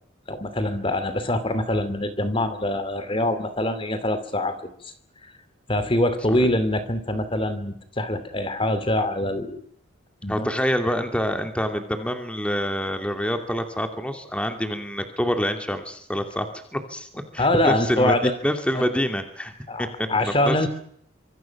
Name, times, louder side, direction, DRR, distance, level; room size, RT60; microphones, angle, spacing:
voice 1, 0.3-4.7 5.2-5.3 5.7-9.6 10.2-10.5 17.4-18.4 18.7-18.9 19.7-20.7, left 1 dB, 25° left, 11 dB, 2.8 m, -24 dB
voice 2, 10.3-16.5 16.7-18.2 18.4-19.5 19.8-20.7, equal, 5° left, 6 dB, 2.5 m, -26 dB
26.0 x 25.5 x 6.0 m, 0.66 s
head